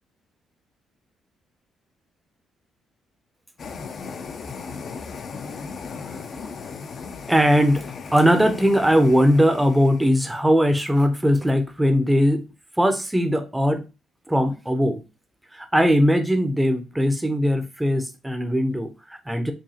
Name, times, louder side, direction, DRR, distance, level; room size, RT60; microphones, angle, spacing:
sound 1, 3.6-10.1, left 5 dB, 55° left, 0.5 m, -37 dB
voice 1, 7.3-12.4 12.8-13.9 14.3-15.0 15.5-19.5, equal, 10° right, 0.6 m, -20 dB
4.8 x 2.4 x 2.8 m
cardioid pair, 90°, 0 cm